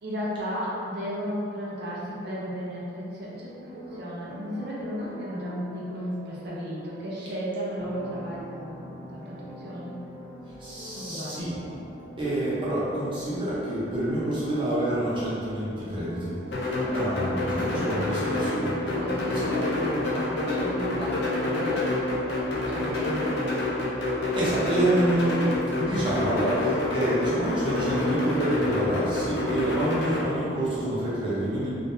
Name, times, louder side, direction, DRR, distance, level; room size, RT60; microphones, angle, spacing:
voice 1, 0.0-9.9 11.0-11.5 16.8-18.4 19.0-21.9 22.4-23.4, equal, 55° right, -6 dB, 0.7 m, -35 dB
sound 1, 3.2-19.2, equal, 80° left, 1.2 m, -44 dB
voice 2, 10.6-11.6 12.2-18.7 19.3-19.5 24.4-31.7, right 1 dB, 25° right, -9 dB, 0.8 m, -28 dB
sound 2, 16.5-30.2, left 2 dB, 60° left, 0.6 m, -28 dB
3.6 x 2.5 x 2.6 m, 2.6 s
head